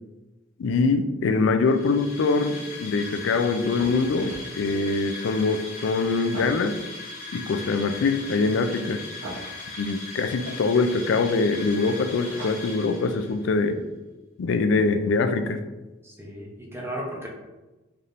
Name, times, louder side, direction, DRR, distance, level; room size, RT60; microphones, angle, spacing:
voice 1, 0.6-6.8 7.3-9.0 9.8-13.8 14.4-15.6, left 4 dB, 70° left, 8 dB, 0.3 m, -23 dB
sound 1, 1.6-13.5, left 3 dB, 40° left, 0.9 m, -39 dB
sound 2, 3.8-4.5 6.3-6.7 9.2-9.5 12.2-12.9, right 1 dB, 80° right, 0.9 m, -38 dB
voice 2, 16.0-17.3, equal, 10° right, -2 dB, 0.6 m, -35 dB
4.2 x 3.4 x 2.5 m, 1.1 s
head